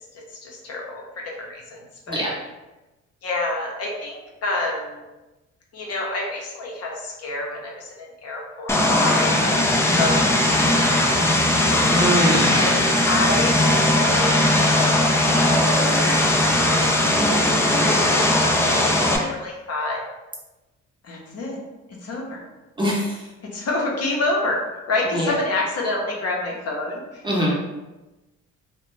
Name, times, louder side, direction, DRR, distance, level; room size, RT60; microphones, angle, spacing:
voice 1, 0.3-1.8 2.1-2.3 3.2-5.0 5.7-9.7 10.0-11.6 12.5-20.0 21.0-21.6 22.0-22.4 23.4-27.2, left 2 dB, 55° left, -2 dB, 0.7 m, -29 dB
Vehicle, 8.7-19.2, left 1 dB, 10° left, 0.3 m, -19 dB
voice 2, 11.9-12.6 22.8-23.2 25.1-25.3 27.2-27.5, equal, 15° right, -5 dB, 0.7 m, -23 dB
2.4 x 2.1 x 3.0 m, 1.1 s
cardioid pair, 90°, 30 cm